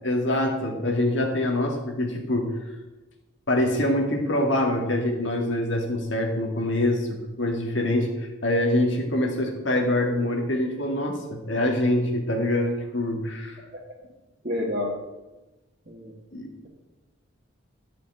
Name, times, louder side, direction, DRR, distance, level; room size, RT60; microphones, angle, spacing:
voice 1, 0.0-2.5 3.5-7.1 7.4-13.6 16.3-16.5, left 1 dB, 65° left, 1 dB, 2.0 m, -25 dB
voice 2, 13.6-14.0 14.4-15.0 15.9-16.2, left 1 dB, 40° right, -5 dB, 1.9 m, -30 dB
12.0 x 5.8 x 8.8 m, 1.1 s
head